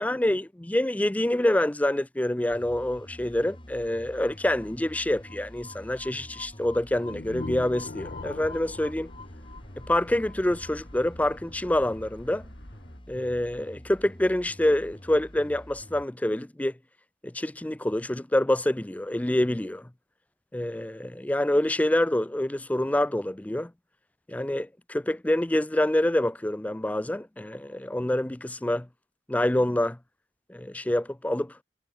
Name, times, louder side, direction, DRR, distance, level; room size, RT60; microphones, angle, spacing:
voice 1, 0.0-9.1 9.9-12.4 13.1-16.7 17.2-19.9 20.5-23.7 24.3-28.9 29.3-30.0 30.5-31.6, left 1 dB, 10° left, 0.4 m, -26 dB
sound 1, 2.5-16.1, left 1 dB, 25° left, 4.6 m, -46 dB
sound 2, 7.0-10.1, left 3 dB, 50° left, 0.7 m, -41 dB
sound 3, 7.1-13.0, left 1 dB, 80° left, 5.4 m, -50 dB
head